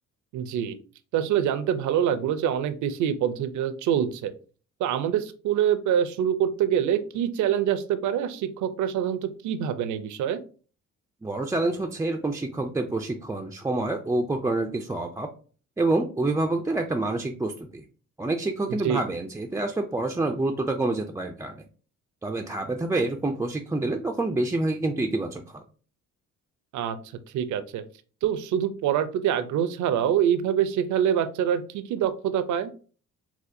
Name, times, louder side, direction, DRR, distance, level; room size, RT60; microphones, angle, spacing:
voice 1, 0.3-0.8 1.1-4.3 4.8-10.4 18.7-19.0 26.7-27.0 27.3-27.8 28.2-32.7, right 9 dB, 75° right, 11 dB, 0.5 m, -25 dB
voice 2, 11.2-15.3 15.8-17.8 18.2-21.5 22.2-25.6, right 2 dB, 10° right, 2 dB, 0.3 m, -27 dB
4.2 x 2.2 x 2.6 m, 0.39 s
cardioid pair, 90°, 30 cm